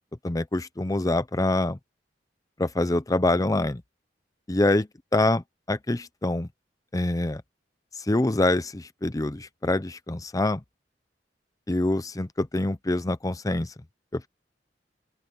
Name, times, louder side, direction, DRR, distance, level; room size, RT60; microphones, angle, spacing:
voice 1, 0.2-1.8 2.6-3.8 4.5-4.9 5.1-6.5 6.9-7.4 8.0-10.6 11.7-13.7 14.1-14.3, left 2 dB, 20° left, 0.6 m, -25 dB
open air
head